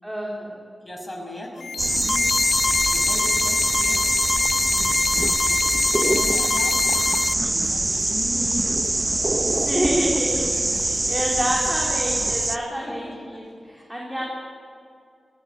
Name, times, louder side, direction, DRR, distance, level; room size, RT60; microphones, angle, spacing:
voice 1, 0.0-0.6 9.5-10.5 10.7-14.3, equal, 10° right, -3 dB, 4.1 m, -28 dB
voice 2, 0.8-2.2 2.9-4.2 4.6-5.6 5.9-6.8 7.4-8.7 9.9-10.2 10.5-11.1 12.8-13.4 14.2-14.3, left 1 dB, 20° left, 0 dB, 6.1 m, -38 dB
sound 1, 1.6-7.3, left 5 dB, 85° left, 0.5 m, -24 dB
sound 2, 1.8-12.6, right 2 dB, 30° right, 0.9 m, -24 dB
17.0 x 17.0 x 9.9 m, 2.4 s
cardioid pair, 70°, 0 cm